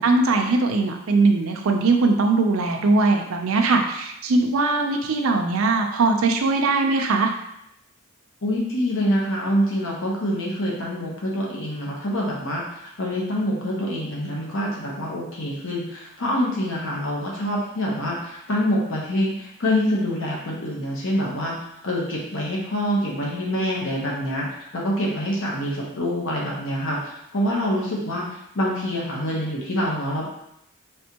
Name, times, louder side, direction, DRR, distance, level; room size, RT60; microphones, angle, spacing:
voice 1, 0.0-7.3, right 3 dB, 70° right, 3 dB, 0.5 m, -20 dB
voice 2, 8.4-21.6 21.8-24.5 24.7-30.3, equal, 65° left, -3 dB, 1.0 m, -26 dB
4.4 x 3.4 x 2.9 m, 0.80 s
head